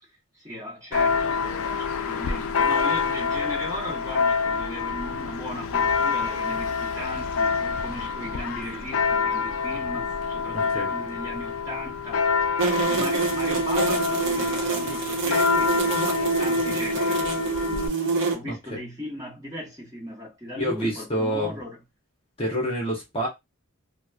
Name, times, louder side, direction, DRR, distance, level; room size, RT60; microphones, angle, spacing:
voice 1, 0.3-12.3 12.8-17.9 18.3-21.8, equal, 15° right, 1.0 m, -37 dB
Church bell, 0.9-17.9, left 5 dB, 70° left, 0.3 m, -27 dB
voice 2, 10.5-10.9 18.5-18.6 20.6-21.6 22.4-23.3, equal, 25° left, 0.8 m, -27 dB
sound 1, 12.6-18.3, right 4 dB, 55° right, 0.8 m, -26 dB
2.9 x 2.1 x 2.3 m
head